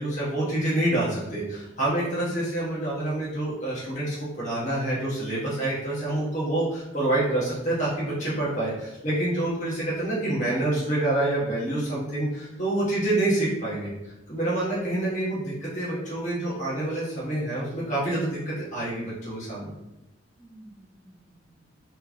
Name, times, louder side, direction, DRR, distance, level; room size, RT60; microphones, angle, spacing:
voice 1, 0.0-19.7, right 1 dB, 40° left, -8 dB, 1.2 m, -27 dB
voice 2, 12.9-13.2 14.3-14.6 20.4-21.7, right 1 dB, 5° right, -3 dB, 0.7 m, -51 dB
3.8 x 3.2 x 3.6 m, 0.94 s
head